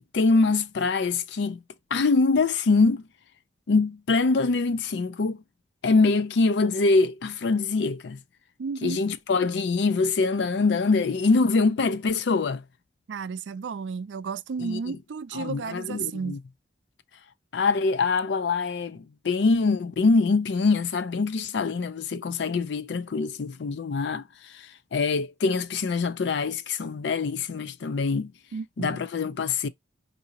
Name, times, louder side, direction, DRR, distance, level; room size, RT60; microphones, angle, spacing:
voice 1, 0.0-1.6 1.9-3.1 3.7-5.4 5.8-8.2 8.8-12.6 14.6-15.0 15.3-16.4 17.5-28.3 28.8-29.7, left 4 dB, 75° left, 0.4 m, -24 dB
voice 2, 8.6-9.0 13.1-16.4 28.5-29.0, right 5 dB, 80° right, 0.4 m, -33 dB
4.9 x 2.7 x 2.8 m
head